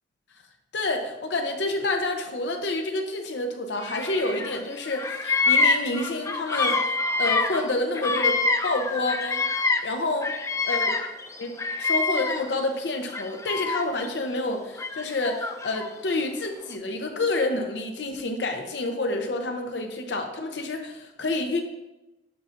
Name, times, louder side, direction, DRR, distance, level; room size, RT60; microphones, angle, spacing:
voice 1, 0.7-9.4 9.8-10.3 10.7-10.9 11.4-21.6, left 2 dB, 75° left, 4 dB, 0.7 m, -28 dB
Bird vocalization bird call bird song, 3.8-4.6 4.8-9.9 10.2-12.6 13.1-14.1 14.8-15.9, left 3 dB, 15° left, 0.3 m, -26 dB
7.7 x 5.6 x 2.6 m, 0.99 s
head